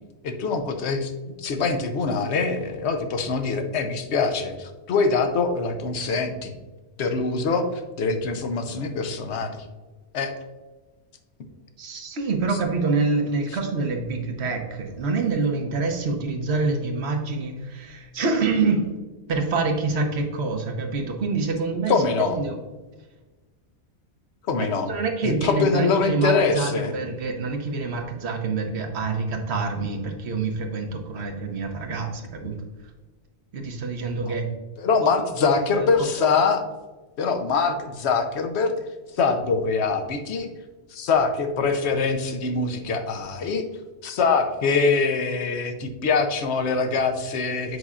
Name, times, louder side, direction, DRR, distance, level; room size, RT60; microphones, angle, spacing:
voice 1, 0.2-1.1 1.4-6.6 7.0-9.6 10.1-10.3 21.9-22.4 24.5-24.9 25.2-26.9 34.8-36.6 37.2-38.7 39.1-40.5 40.9-43.7 44.0-47.8, left 4 dB, 70° left, 7 dB, 1.0 m, -24 dB
voice 2, 11.8-18.9 19.3-22.6 24.9-32.6 33.5-34.4 35.4-35.9, right 4 dB, 70° right, 3 dB, 1.2 m, -26 dB
8.0 x 5.4 x 2.4 m, 1.2 s
omnidirectional pair, 1.2 m